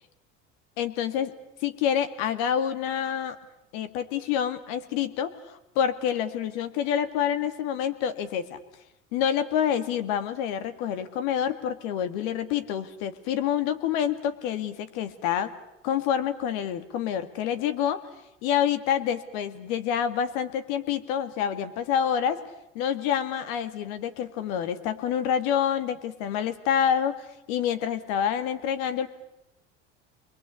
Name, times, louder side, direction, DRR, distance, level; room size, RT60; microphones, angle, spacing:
voice 1, 0.8-1.3 1.6-3.4 3.7-8.6 9.1-15.5 15.8-18.0 18.4-22.4 22.7-29.1, left 9 dB, 75° left, 10 dB, 2.2 m, -27 dB
27.5 x 22.5 x 8.4 m, 0.85 s
hypercardioid pair, 80°, 37 cm